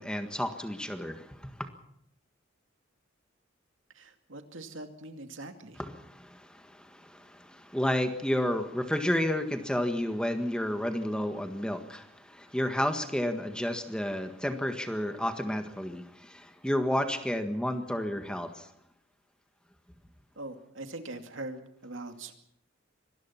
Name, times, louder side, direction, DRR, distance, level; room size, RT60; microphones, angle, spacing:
voice 1, 0.0-1.7 5.8-18.7, left 1 dB, 5° left, 7 dB, 1.6 m, -31 dB
voice 2, 3.9-5.8 20.4-22.3, right 2 dB, 90° right, 6 dB, 2.4 m, -42 dB
25.0 x 19.5 x 5.9 m, 0.71 s
head